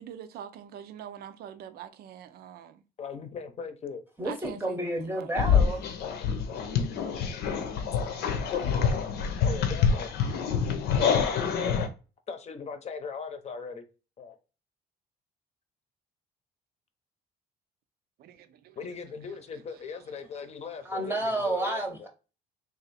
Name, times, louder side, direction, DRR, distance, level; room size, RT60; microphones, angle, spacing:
voice 1, 0.0-2.8 4.3-5.3 18.2-18.5, right 9 dB, 65° right, 0.6 m, -44 dB
voice 2, 3.0-4.0 9.4-10.1 12.3-13.8 14.2-14.4 18.8-22.1, left 5 dB, 40° left, 0.8 m, -39 dB
voice 3, 4.2-5.8 20.9-22.1, right 1 dB, 10° right, 0.8 m, -30 dB
sound 1, 5.4-11.9, left 6 dB, 70° left, 0.7 m, -26 dB
3.2 x 2.6 x 4.1 m
cardioid pair, 110°, 17 cm